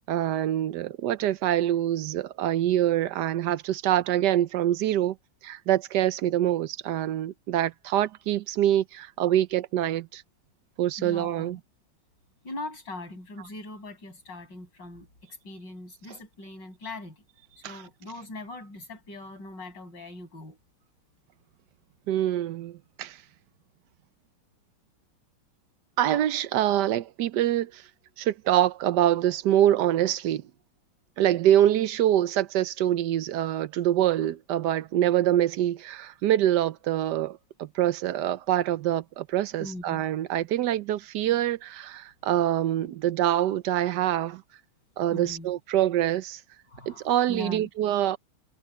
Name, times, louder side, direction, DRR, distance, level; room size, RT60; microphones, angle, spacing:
voice 1, 0.1-5.2 5.4-10.2 10.8-11.6 17.6-17.8 22.1-23.2 26.0-27.8 28.2-30.4 31.2-44.4 45.0-46.4 46.9-48.2, right 12 dB, 65° right, 1.1 m, -25 dB
voice 2, 11.0-11.6 12.4-17.2 17.6-20.6 39.6-40.0 45.1-45.5 46.7-47.7, left 2 dB, 60° left, 8.1 m, -41 dB
omnidirectional pair, 2.2 m